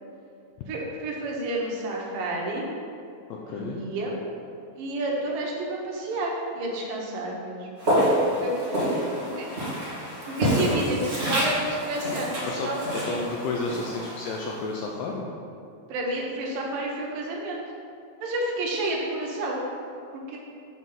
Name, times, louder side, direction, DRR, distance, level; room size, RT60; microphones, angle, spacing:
voice 1, 0.7-2.7 3.5-4.2 4.8-7.7 8.4-9.5 10.3-13.2 15.9-17.6 18.2-19.6 20.1-20.4, right 1 dB, 75° right, -2 dB, 2.7 m, -30 dB
voice 2, 3.3-3.8 10.6-10.8 12.4-15.3, left 4 dB, 80° left, -1 dB, 2.2 m, -32 dB
Walk footsteps, 7.8-14.9, equal, 50° right, 0.7 m, -28 dB
7.2 x 4.0 x 5.7 m, 2.5 s
omnidirectional pair, 4.1 m